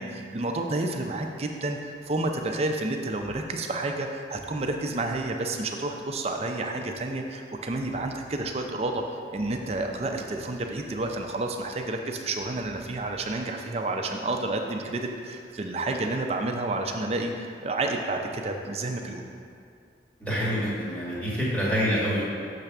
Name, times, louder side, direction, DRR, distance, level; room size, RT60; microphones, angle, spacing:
voice 1, 0.0-9.0 9.3-19.3, right 2 dB, 35° right, 3 dB, 0.5 m, -30 dB
voice 2, 20.2-22.3, equal, 10° left, -9 dB, 1.6 m, -26 dB
6.7 x 3.3 x 5.9 m, 2.3 s
head